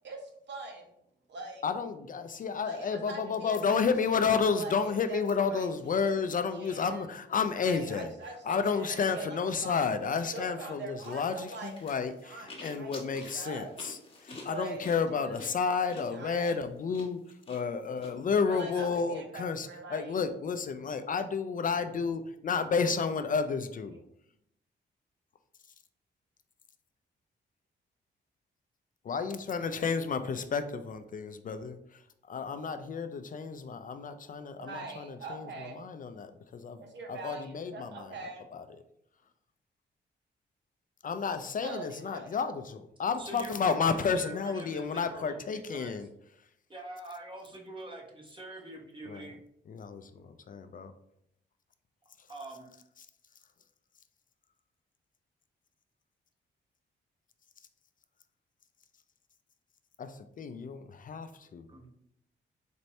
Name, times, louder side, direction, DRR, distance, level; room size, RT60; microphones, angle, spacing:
voice 1, 0.0-0.9 1.3-1.6 2.6-3.8 4.5-5.2 5.5-5.7 5.9-6.1 6.5-7.0 7.6-9.9 10.3-11.7 12.2-12.9 13.3-13.7 14.5-14.8 15.1-15.5 15.9-16.6 18.5-20.2 34.6-35.8 36.8-38.5 41.5-42.4, right 3 dB, 70° right, 2 dB, 0.9 m, -43 dB
voice 2, 1.6-8.1 8.4-24.0 29.0-38.2 38.5-38.7 41.0-46.1 49.1-49.3 49.7-50.9 52.2-52.3 60.0-61.7, left 5 dB, 45° left, 9 dB, 0.4 m, -31 dB
sound 1, 11.0-18.1, left 2 dB, 30° left, 1.2 m, -49 dB
voice 3, 43.2-45.4 45.7-45.9 46.7-49.4 52.3-52.7 61.7-61.9, right 2 dB, 25° right, 0 dB, 1.2 m, -44 dB
4.3 x 2.6 x 3.1 m, 0.74 s
cardioid pair, 75°, 19 cm